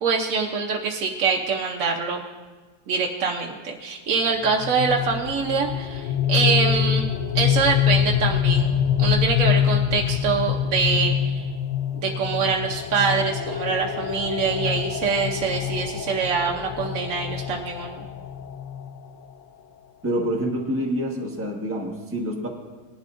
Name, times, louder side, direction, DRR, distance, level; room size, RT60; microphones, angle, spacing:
voice 1, 0.0-2.2 2.9-7.0 7.3-11.4 12.0-18.0, right 5 dB, 60° right, -1 dB, 1.1 m, -24 dB
sound 1, 4.4-19.3, left 9 dB, 65° left, 0.7 m, -25 dB
voice 2, 20.0-22.5, equal, 10° right, -2 dB, 1.1 m, -27 dB
19.0 x 11.0 x 2.5 m, 1.3 s
omnidirectional pair, 1.8 m